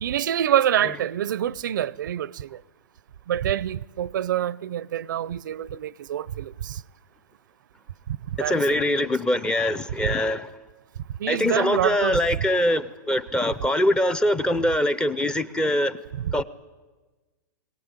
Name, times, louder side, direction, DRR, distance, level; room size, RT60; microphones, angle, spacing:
voice 1, 0.0-2.6 3.3-6.8 8.3-8.5 11.2-12.2 16.2-16.3, right 11 dB, 75° right, 0.6 m, -26 dB
voice 2, 8.4-10.5 11.3-16.0 16.3-16.4, left 1 dB, 10° left, 0.6 m, -23 dB
21.5 x 18.0 x 9.0 m
hypercardioid pair, 150°, 10 cm